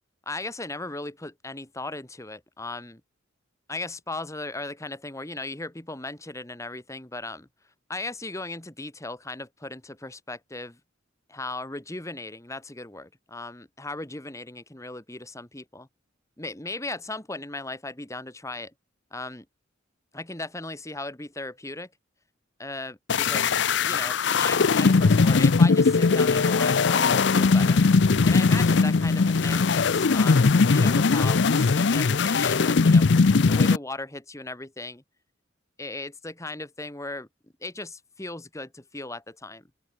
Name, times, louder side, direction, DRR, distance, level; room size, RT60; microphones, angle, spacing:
voice 1, 0.2-3.0 3.7-7.5 7.9-10.8 11.3-15.9 16.4-18.7 19.1-19.4 20.1-21.9 22.6-27.8 28.3-33.1 33.5-35.0 35.8-37.3 37.6-39.7, left 2 dB, 15° left, 1.8 m, -37 dB
sound 1, 23.1-33.8, left 4 dB, 65° left, 0.6 m, -20 dB
open air
head